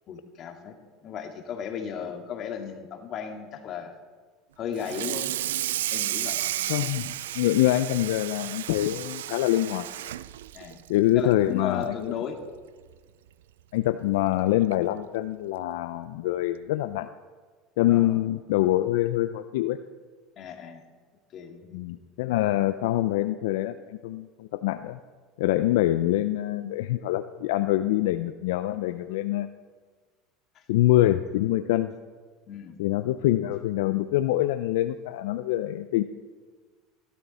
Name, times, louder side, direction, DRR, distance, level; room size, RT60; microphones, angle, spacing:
voice 1, 0.1-3.9 4.6-5.3 5.9-6.5 10.5-10.8 11.1-12.4 17.9-18.2 20.4-20.8 21.3-21.9 25.8-26.0 32.5-32.8, left 7 dB, 45° left, 4 dB, 2.0 m, -35 dB
Water tap faucet / Sink (filling or washing), 4.8-11.4 11.8-12.1 12.4-12.5 12.9-13.0 14.1-14.2 14.7-14.9, right 13 dB, 90° right, 0.3 m, -32 dB
voice 2, 6.7-9.9 10.9-12.2 13.7-17.1 17.8-19.8 21.7-25.0 25.4-29.5 30.7-31.9 32.8-36.0, left 14 dB, 80° left, 11 dB, 0.4 m, -25 dB
15.5 x 12.5 x 4.2 m, 1.5 s
supercardioid pair, 105°, 0 cm